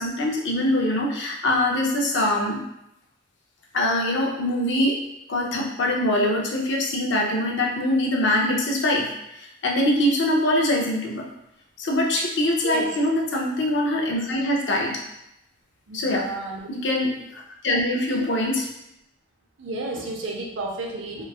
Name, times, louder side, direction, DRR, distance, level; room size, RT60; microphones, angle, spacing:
voice 1, 0.0-2.6 3.7-5.0 5.3-9.1 9.4-11.3 11.8-15.0 15.9-16.3 16.7-18.7, left 1 dB, 70° left, 0 dB, 0.5 m, -23 dB
voice 2, 15.9-16.6 18.1-18.4 19.6-21.2, right 2 dB, 85° right, 0 dB, 0.6 m, -32 dB
3.0 x 2.3 x 2.3 m, 0.83 s
head